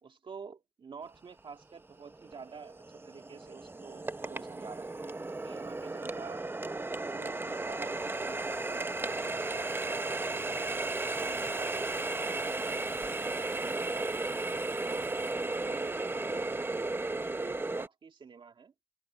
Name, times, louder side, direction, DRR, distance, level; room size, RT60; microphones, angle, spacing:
voice 1, 0.0-5.0 5.3-6.4 7.0-14.2 14.8-15.2 15.6-18.7, right 5 dB, 50° right, 2.0 m, -49 dB
Water tap faucet, 1.4-1.5 2.1-17.9, right 2 dB, 20° right, 1.1 m, -35 dB
cardioid pair, 65°, 11 cm